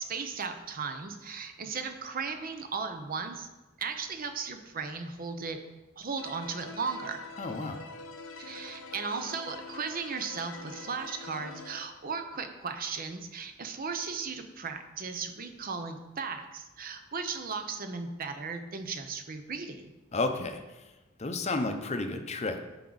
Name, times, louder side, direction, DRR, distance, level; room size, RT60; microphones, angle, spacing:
voice 1, 0.0-3.5 3.8-5.6 6.0-7.2 8.4-19.9, right 5 dB, 45° right, 7 dB, 0.8 m, -36 dB
sound 1, 6.2-11.8, left 3 dB, 85° left, 0.9 m, -45 dB
voice 2, 7.4-7.8 20.1-20.6 21.2-22.6, left 2 dB, 35° left, 6 dB, 0.7 m, -31 dB
11.0 x 4.8 x 4.0 m, 1.1 s
head